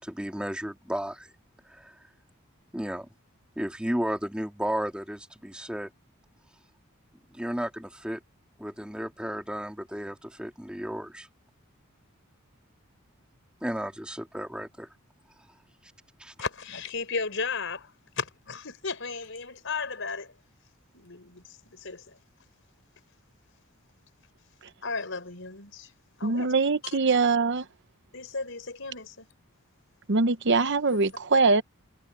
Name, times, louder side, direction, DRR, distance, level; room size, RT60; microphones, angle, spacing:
voice 1, 0.0-1.3 1.6-1.9 2.7-3.1 3.6-5.9 7.3-8.2 8.6-11.3 13.6-14.9 16.2-16.3, equal, 5° right, 2.6 m, -33 dB
voice 2, 16.4-20.3 20.9-22.2 24.8-25.9 26.2-26.5 28.1-29.3 30.9-31.0, left 4 dB, 60° left, 5.6 m, -35 dB
voice 3, 26.2-27.7 30.1-31.6, right 4 dB, 55° right, 0.9 m, -23 dB
head